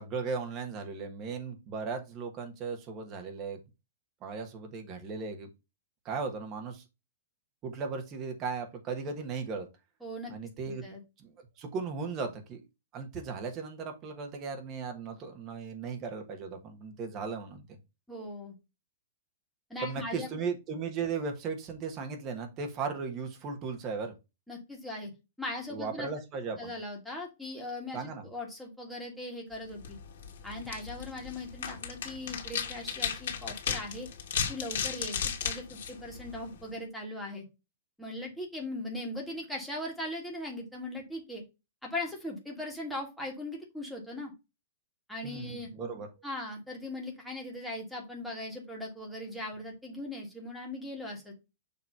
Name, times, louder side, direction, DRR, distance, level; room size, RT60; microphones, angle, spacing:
voice 1, 0.0-3.6 4.2-5.5 6.0-6.8 7.6-9.7 10.3-10.8 11.2-12.6 12.9-17.7 19.8-24.1 25.7-26.7 27.9-28.3 45.2-46.1, right 5 dB, 20° right, 5 dB, 1.3 m, -37 dB
voice 2, 10.0-10.3 10.7-11.0 18.1-18.5 19.7-20.5 24.5-25.1 25.4-26.1 26.6-29.8 30.4-34.1 34.5-37.4 38.0-41.4 41.8-44.3 45.1-45.7 46.2-51.3, left 1 dB, ahead, -2 dB, 1.7 m, -39 dB
sound 1, 29.7-36.7, left 7 dB, 65° left, 1.9 m, -36 dB
6.8 x 3.1 x 5.3 m, 0.25 s
supercardioid pair, 175°, 0 cm